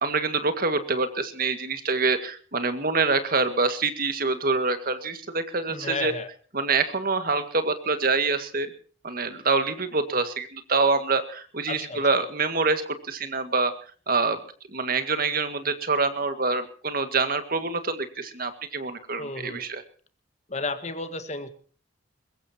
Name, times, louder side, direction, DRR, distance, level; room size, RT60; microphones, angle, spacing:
voice 1, 0.0-6.1 6.5-8.7 9.0-13.7 14.1-14.4 14.7-19.8, right 4 dB, 50° right, 9 dB, 2.0 m, -26 dB
voice 2, 5.7-6.3 11.7-12.0 19.2-19.7 20.5-21.5, left 3 dB, 35° left, 10 dB, 1.6 m, -32 dB
22.5 x 22.0 x 2.9 m, 0.42 s
head